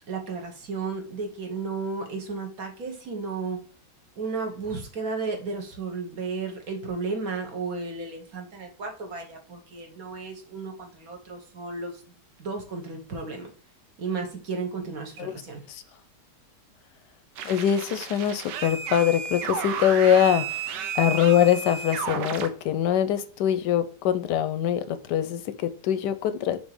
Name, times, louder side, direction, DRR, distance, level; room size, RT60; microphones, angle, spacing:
voice 1, 0.1-3.6 4.2-12.0 12.4-13.5 14.0-15.6, right 4 dB, 60° right, 3 dB, 1.7 m, -33 dB
voice 2, 17.4-26.7, left 9 dB, 85° left, 12 dB, 1.2 m, -23 dB
sound 1, 17.4-22.5, right 7 dB, 85° right, 1.3 m, -32 dB
6.4 x 3.0 x 4.8 m, 0.43 s
omnidirectional pair, 1.8 m